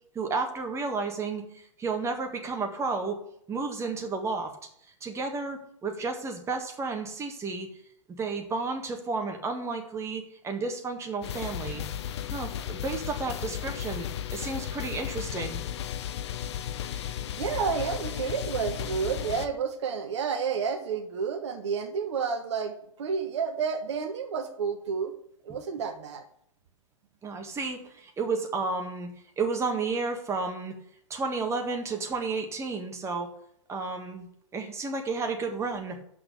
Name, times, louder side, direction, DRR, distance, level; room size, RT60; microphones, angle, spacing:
voice 1, 0.1-3.2 3.5-4.5 5.0-7.7 8.2-11.8 12.3-15.6 27.2-29.1 29.4-30.7 31.1-33.3 33.7-36.0, right 4 dB, 15° right, 4 dB, 1.7 m, -32 dB
sound 1, 11.2-19.5, left 10 dB, 55° left, 0.8 m, -34 dB
voice 2, 17.1-25.1 25.4-26.2, right 6 dB, 60° right, 5 dB, 1.2 m, -30 dB
7.8 x 6.3 x 8.0 m, 0.70 s
figure-of-eight pair, 100°, 17 cm